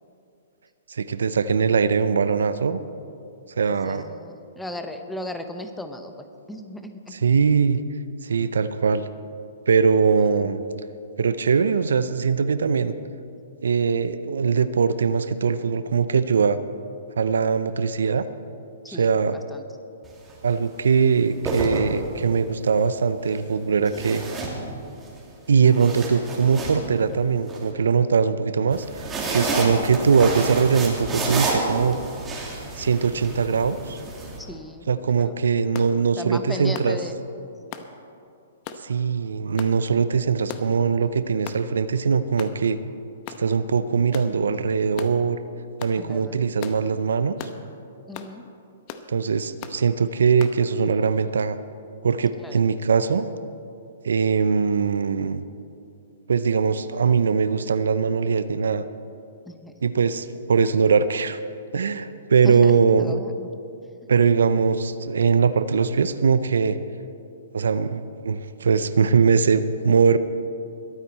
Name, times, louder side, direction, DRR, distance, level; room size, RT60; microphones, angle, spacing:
voice 1, 0.9-2.8 3.6-4.0 7.1-7.8 8.2-9.0 9.7-10.6 11.2-12.9 13.6-16.6 17.2-18.2 18.9-19.3 20.4-24.2 25.5-32.0 32.8-34.0 34.9-37.0 38.8-42.8 43.4-45.4 45.8-47.3 49.1-51.6 52.0-53.3 54.0-55.4 56.3-58.8 59.8-61.4 61.7-63.2 64.1-66.8 67.5-70.2, right 5 dB, 75° right, 13 dB, 0.6 m, -21 dB
voice 2, 3.7-7.2 10.2-10.5 18.8-19.1 19.5-19.6 34.4-35.4 36.2-37.2 37.7-37.8 46.0-46.4 48.1-48.5 52.4-52.6 59.5-59.7 62.4-63.5, left 1 dB, 5° left, 7 dB, 0.9 m, -36 dB
sound 1, 20.0-20.3 21.2-22.4 23.9-25.1 25.5-27.6 28.7-34.4, right 2 dB, 15° right, 2.7 m, -29 dB
sound 2, 35.7-35.9 36.7-37.0 37.7-37.9 38.7-38.8 39.6-39.8 40.5-40.8 41.5-41.6 42.4-42.6 43.3-43.5 44.1-44.3 45.0-45.2 45.8-46.0 46.6-46.8 47.4-47.6 48.1-48.3 48.9-49.1 49.6-49.8 50.4-50.6, left 9 dB, 40° left, 0.9 m, -37 dB
21.5 x 9.1 x 4.3 m, 2.6 s
hypercardioid pair, 125°, 0 cm